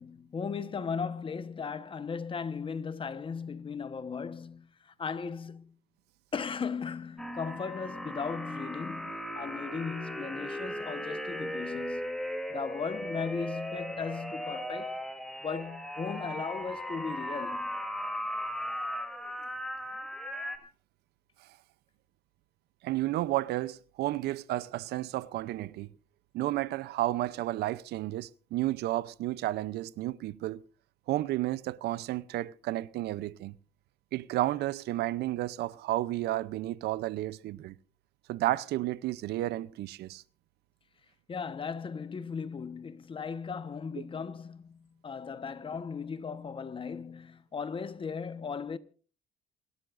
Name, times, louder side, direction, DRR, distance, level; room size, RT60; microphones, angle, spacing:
voice 1, 0.0-5.8 6.3-12.2 12.5-15.0 15.4-17.8 41.3-48.8, left 5 dB, 30° left, 1.2 m, -37 dB
sound 1, 7.2-20.6, equal, ahead, 3.0 m, -37 dB
voice 2, 22.8-25.9 26.3-30.6 31.1-33.5 34.1-37.8 38.3-40.2, right 16 dB, 75° right, 0.7 m, -32 dB
28.0 x 12.5 x 2.6 m
cardioid pair, 110°, 17 cm